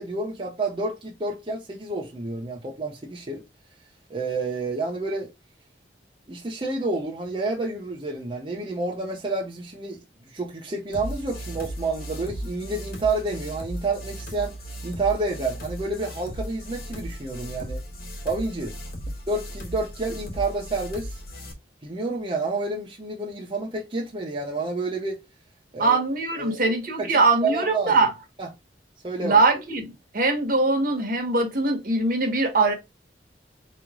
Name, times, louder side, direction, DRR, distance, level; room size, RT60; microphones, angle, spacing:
voice 1, 0.0-3.4 4.1-5.3 6.3-10.0 10.3-14.5 14.8-17.8 18.2-18.7 19.3-21.2 21.8-25.2 25.7-26.0 26.4-26.6 27.0-28.1 28.4-28.5 29.0-29.4, right 3 dB, 30° right, 0.8 m, -29 dB
sound 1, 10.9-21.5, equal, 60° left, 1.3 m, -36 dB
voice 2, 25.8-28.1 29.2-32.7, right 3 dB, 55° right, 1.3 m, -22 dB
4.2 x 3.1 x 3.6 m
head